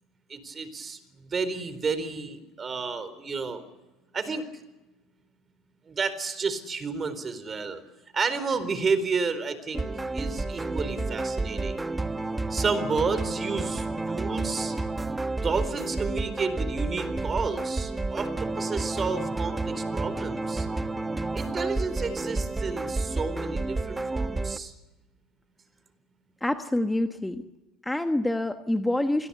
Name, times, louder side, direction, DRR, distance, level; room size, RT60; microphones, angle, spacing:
voice 1, 0.3-3.6 4.1-4.4 5.9-7.8 8.1-9.8 10.1-11.8 12.5-14.7 15.4-20.7 21.3-24.7, right 4 dB, 30° right, 13 dB, 4.1 m, -31 dB
sound 1, 9.7-24.6, right 2 dB, 15° right, 1.2 m, -30 dB
voice 2, 26.4-27.4 27.8-29.3, left 1 dB, 5° left, 7 dB, 1.4 m, -26 dB
27.5 x 21.0 x 6.9 m, 1.1 s
supercardioid pair, 90°, 0 cm